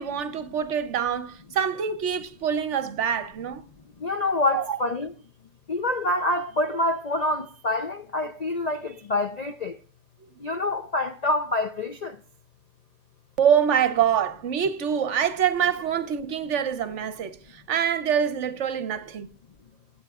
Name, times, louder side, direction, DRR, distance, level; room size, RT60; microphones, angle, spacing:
voice 1, 0.0-3.6 4.5-4.8 13.4-19.3, right 8 dB, 60° right, 1.0 m, -25 dB
voice 2, 4.0-5.1 5.7-9.7 10.4-12.2, left 2 dB, 50° left, 0.5 m, -26 dB
17.0 x 9.3 x 2.4 m
omnidirectional pair, 1.5 m